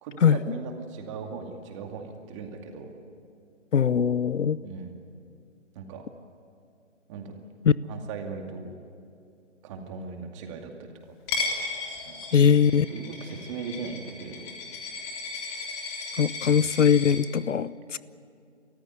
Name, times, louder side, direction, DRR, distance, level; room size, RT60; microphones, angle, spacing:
voice 1, 0.0-2.9 4.6-4.9 5.7-6.0 7.1-7.4 7.9-8.7 9.6-10.9 12.1-12.2 12.9-14.5 15.4-15.7 16.4-16.6, right 5 dB, 25° right, 3 dB, 2.3 m, -38 dB
voice 2, 3.7-4.6 7.7-7.8 12.3-12.9 16.2-18.0, left 7 dB, 75° left, 19 dB, 0.8 m, -21 dB
Coin (dropping), 11.3-17.1, left 4 dB, 25° left, 3.2 m, -35 dB
29.5 x 14.5 x 9.6 m, 2.4 s
figure-of-eight pair, 150°, 37 cm